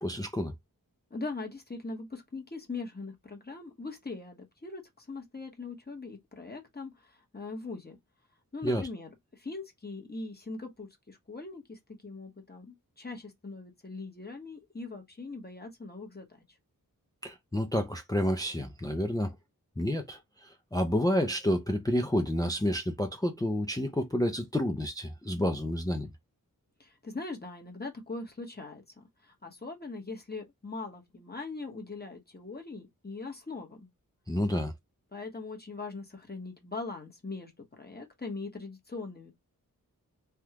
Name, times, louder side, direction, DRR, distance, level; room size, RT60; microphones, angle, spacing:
voice 1, 0.0-0.5 8.6-8.9 17.2-19.3 19.8-20.2 20.7-26.1 34.3-34.7, left 1 dB, 10° left, 0.5 m, -29 dB
voice 2, 1.1-8.0 8.5-16.3 26.8-33.9 35.1-37.5 37.8-39.3, left 3 dB, 25° left, 1.1 m, -41 dB
3.5 x 2.3 x 2.8 m
wide cardioid pair, 75°, 35 cm